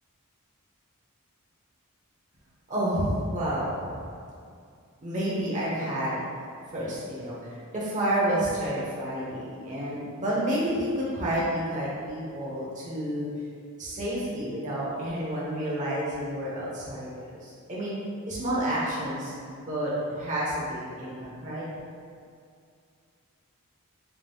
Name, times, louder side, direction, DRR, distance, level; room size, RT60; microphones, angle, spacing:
voice 1, 2.7-4.0 5.0-6.5 6.7-13.3 13.8-17.9 18.2-21.7, right 1 dB, 35° right, -7 dB, 0.9 m, -30 dB
4.5 x 3.6 x 2.2 m, 2.3 s
head